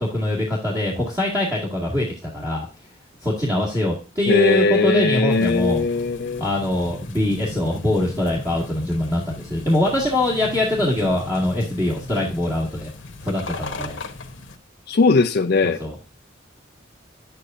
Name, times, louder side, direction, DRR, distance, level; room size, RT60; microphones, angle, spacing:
voice 1, 0.0-2.7 3.2-5.8 6.4-12.9 13.2-14.0 15.6-16.0, left 1 dB, 20° right, 2.1 m, -23 dB
voice 2, 4.3-6.4 14.9-15.8, left 3 dB, 55° left, 0.5 m, -19 dB
sound 1, 5.3-14.6, left 2 dB, 80° left, 1.1 m, -37 dB
10.0 x 8.3 x 2.6 m
head